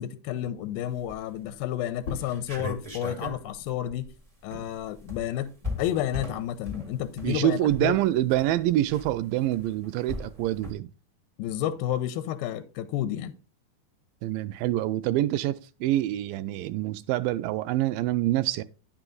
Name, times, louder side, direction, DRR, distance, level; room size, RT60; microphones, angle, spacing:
voice 1, 0.0-4.1 4.4-5.5 5.8-8.0 11.4-13.3, left 11 dB, 85° left, 2.4 m, -31 dB
sound 1, 0.9-1.4 1.8-1.9 2.1-10.7, left 1 dB, 55° right, 0.4 m, -39 dB
sound 2, 2.0-7.2 7.6-9.4, left 4 dB, 60° left, 1.8 m, -46 dB
voice 2, 7.2-10.9 14.2-18.6, right 14 dB, 80° right, 2.1 m, -26 dB
10.5 x 6.0 x 3.8 m
omnidirectional pair, 4.2 m